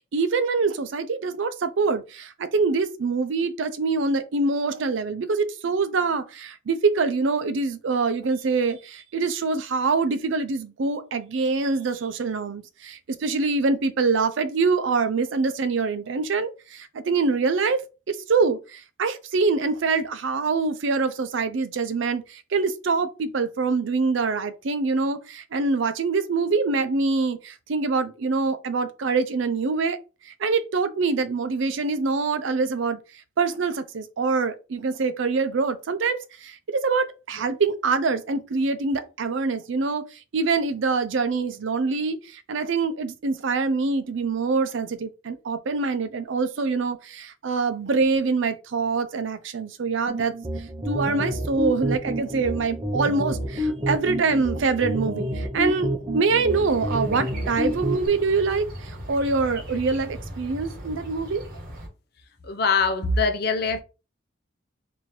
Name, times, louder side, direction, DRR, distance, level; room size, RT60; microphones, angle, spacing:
voice 1, 0.1-30.0 30.3-33.0 33.4-50.3 50.9-61.4, right 4 dB, 70° right, 0.5 m, -25 dB
sound 1, 50.1-58.1, equal, 20° right, 0.6 m, -29 dB
sound 2, 56.5-61.9, equal, 45° right, 1.3 m, -38 dB
voice 2, 62.4-63.8, left 4 dB, 50° left, 0.6 m, -23 dB
4.2 x 2.7 x 3.1 m
head